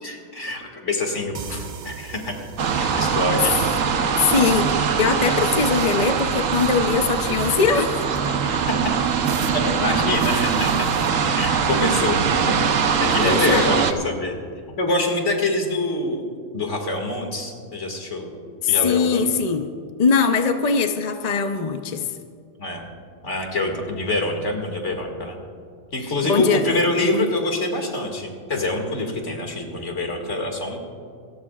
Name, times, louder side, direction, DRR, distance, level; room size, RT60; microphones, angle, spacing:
voice 1, 0.0-2.4 2.7-3.6 4.1-4.2 5.3-5.4 8.7-8.8 9.5-11.0 11.3-12.5 13.0-14.4 14.8-16.2 16.5-18.4 18.7-19.3 22.6-22.9 23.2-25.4 25.9-30.8, left 2 dB, 55° left, 2 dB, 2.5 m, -25 dB
sound 1, 1.3-4.9, right 6 dB, 45° right, 0.6 m, -40 dB
sound 2, 2.6-13.9, right 6 dB, 70° right, 1.3 m, -22 dB
voice 2, 4.2-4.7 5.0-8.0 13.2-13.8 18.6-19.7 20.0-22.1 26.2-27.3, left 5 dB, 35° left, 6 dB, 0.7 m, -21 dB
28.0 x 14.5 x 2.4 m, 2.2 s
omnidirectional pair, 1.5 m